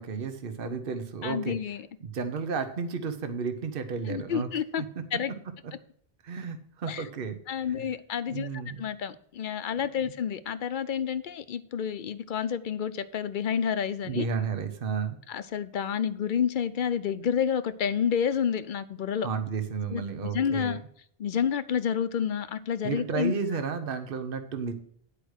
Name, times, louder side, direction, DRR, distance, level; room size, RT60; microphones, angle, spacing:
voice 1, 0.0-1.6 2.0-4.5 4.8-4.9 6.2-7.4 7.7-7.8 8.2-8.8 10.0-10.1 14.0-15.2 19.2-20.8 22.8-24.7, right 5 dB, 60° right, 8 dB, 1.1 m, -32 dB
voice 2, 1.2-1.8 4.1-4.8 5.1-5.3 6.9-7.0 7.5-8.5 8.8-14.2 15.3-19.3 19.9-20.8 21.2-23.3, left 8 dB, 55° left, 13 dB, 0.7 m, -29 dB
10.0 x 4.9 x 6.3 m, 0.62 s
omnidirectional pair, 1.1 m